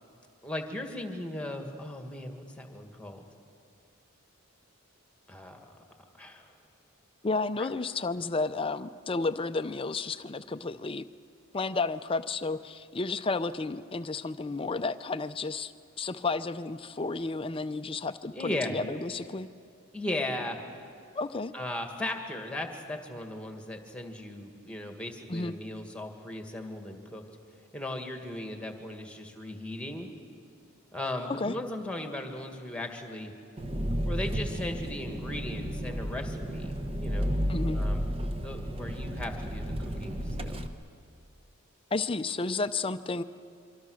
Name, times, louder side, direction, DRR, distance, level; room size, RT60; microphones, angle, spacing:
voice 1, 0.4-3.2 5.3-5.8 6.2-6.5 7.6-7.7 18.3-18.7 19.9-20.6 21.5-27.2 27.7-30.1 30.9-33.3 34.0-36.8 37.0-37.3 37.7-40.6, left 1 dB, 5° left, 4 dB, 1.8 m, -37 dB
voice 2, 7.2-11.1 11.5-15.7 16.0-19.5 21.2-21.5 25.3-25.5 31.3-31.6 37.5-37.8 41.9-43.2, left 3 dB, 25° left, 11 dB, 0.5 m, -32 dB
Engine, 33.6-40.7, equal, 25° right, 1.0 m, -32 dB
26.0 x 24.5 x 6.3 m, 2.5 s
head